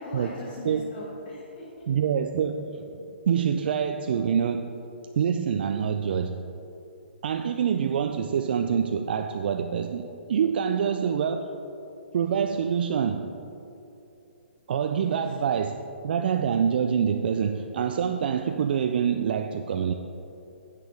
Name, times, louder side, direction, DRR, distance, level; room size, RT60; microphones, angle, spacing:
voice 1, 0.0-1.9 15.0-15.2, left 1 dB, 50° left, -5 dB, 1.8 m, -40 dB
voice 2, 1.9-4.8 5.2-6.5 7.2-11.5 12.1-13.3 14.7-15.8 16.0-19.9, right 7 dB, 55° right, 6 dB, 0.4 m, -26 dB
9.8 x 8.4 x 3.5 m, 2.8 s
hypercardioid pair, 135°, 6 cm